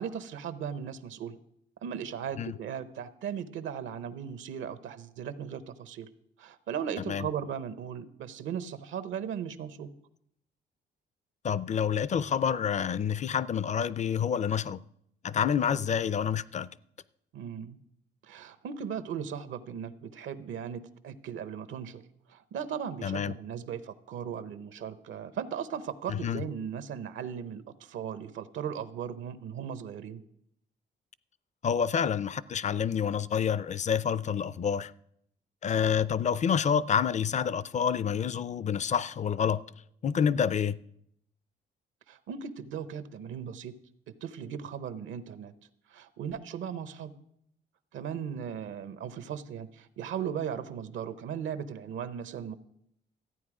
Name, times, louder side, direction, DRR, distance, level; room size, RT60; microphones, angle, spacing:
voice 1, 0.0-1.4 1.8-6.1 6.4-9.9 17.3-17.8 18.2-22.0 22.3-30.2 42.1-43.7 44.2-45.5 45.9-47.1 47.9-52.6, right 8 dB, 80° right, 0.8 m, -37 dB
voice 2, 11.4-14.8 15.2-16.7 23.0-23.3 26.1-26.4 31.6-34.9 35.6-39.6 40.0-40.8, left 7 dB, 35° left, 0.4 m, -28 dB
14.0 x 9.0 x 4.9 m
cardioid pair, 90°, 20 cm